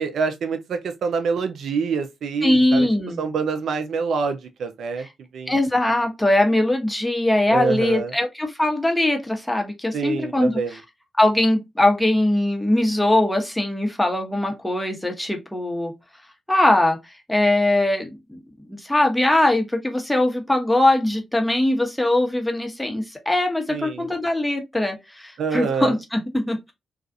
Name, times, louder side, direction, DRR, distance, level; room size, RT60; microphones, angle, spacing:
voice 1, 0.0-2.9 3.2-5.1 5.3-5.5 7.5-8.1 9.9-10.7 23.7-24.1 25.4-26.0, right 5 dB, 75° right, 0.4 m, -26 dB
voice 2, 2.4-3.2 5.0-5.1 5.5-10.8 11.2-15.9 16.5-17.0 17.3-18.4 18.7-26.7, left 1 dB, 10° left, 0.9 m, -21 dB
2.4 x 2.3 x 2.5 m
supercardioid pair, 45°, 0 cm